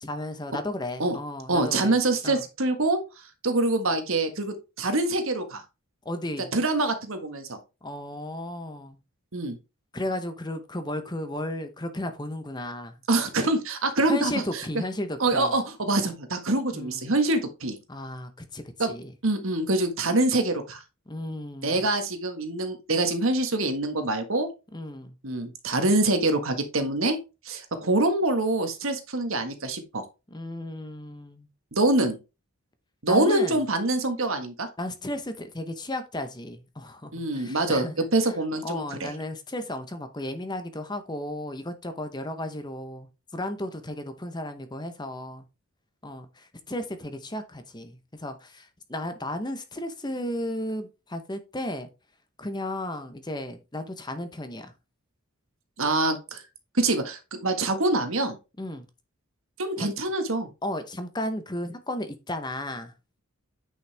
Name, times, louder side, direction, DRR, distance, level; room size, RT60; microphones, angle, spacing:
voice 1, 0.0-1.9 2.2-2.4 6.0-6.5 7.8-9.0 9.9-12.9 14.1-15.5 16.7-17.0 17.9-19.1 21.1-21.8 24.7-25.1 30.3-31.5 33.1-33.6 34.8-37.9 38.2-38.3 38.6-45.4 46.0-51.9 52.4-54.7 58.6-58.8 59.8-59.9 60.6-62.9, left 1 dB, 20° left, 0.9 m, -34 dB
voice 2, 1.5-3.0 3.4-5.6 6.5-7.6 9.3-9.6 13.1-14.8 15.2-17.8 18.8-18.9 19.2-20.8 21.6-24.5 25.2-27.2 27.4-30.0 31.7-32.2 33.0-34.7 37.1-39.1 55.8-56.4 56.7-58.4 59.6-60.5, right 2 dB, 65° right, 1.6 m, -25 dB
9.6 x 5.6 x 3.4 m
head